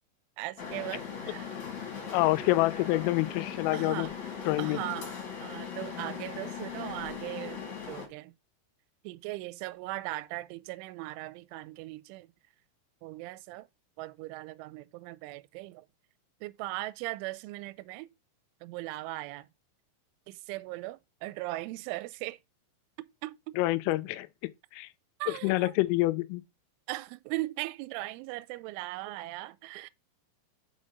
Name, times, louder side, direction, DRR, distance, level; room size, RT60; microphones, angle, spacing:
voice 1, 0.4-1.5 3.7-4.1 4.6-5.1 5.4-8.3 9.0-12.3 13.0-13.7 14.0-15.8 16.4-18.1 18.6-19.5 20.3-22.4 23.2-23.3 25.2-25.7 26.9-29.9, right 18 dB, 85° right, 2.9 m, -38 dB
sound 1, 0.6-8.1, left 7 dB, 45° left, 2.5 m, -39 dB
voice 2, 2.1-4.1 4.5-4.8 23.6-24.3 24.7-24.9 25.3-26.4, left 19 dB, 85° left, 3.2 m, -27 dB
6.2 x 5.5 x 5.2 m
omnidirectional pair, 5.8 m